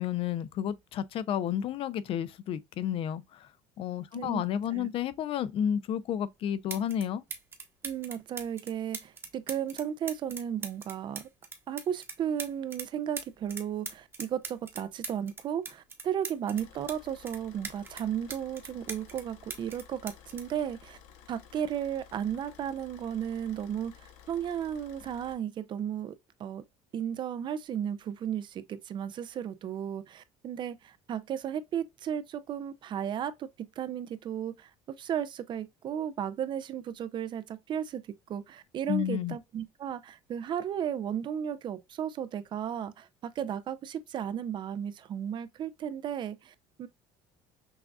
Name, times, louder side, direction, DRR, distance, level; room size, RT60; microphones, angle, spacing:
voice 1, 0.0-3.5 3.8-7.2 38.9-39.4, left 9 dB, 50° left, 0.5 m, -31 dB
sound 1, 6.2-6.3 6.7-7.0 7.3-12.9 13.2-17.0 17.3-19.2 19.5-21.3 22.3-22.5, right 4 dB, 20° right, 1.0 m, -41 dB
voice 2, 7.8-11.3 11.7-21.0 21.3-26.1 26.4-26.6 26.9-34.7 35.0-38.0 38.3-46.9, right 9 dB, 40° right, 0.4 m, -34 dB
Car / Idling, 16.5-25.3, left 8 dB, 85° left, 0.9 m, -54 dB
6.1 x 2.4 x 2.3 m
cardioid pair, 130°, 12 cm